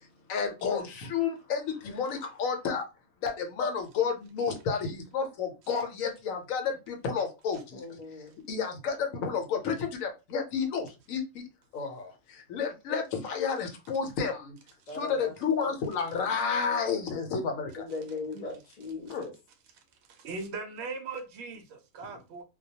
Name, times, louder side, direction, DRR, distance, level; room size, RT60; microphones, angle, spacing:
voice 1, 0.3-2.9 3.2-7.8 8.5-11.4 11.7-14.6 14.9-17.9 19.1-19.2, left 6 dB, 75° left, 1.0 m, -31 dB
voice 2, 7.7-8.3 14.9-15.3 17.8-19.3, left 3 dB, 40° left, 0.6 m, -38 dB
voice 3, 20.1-22.4, right 4 dB, 65° right, 0.7 m, -39 dB
2.3 x 2.1 x 2.7 m
omnidirectional pair, 1.5 m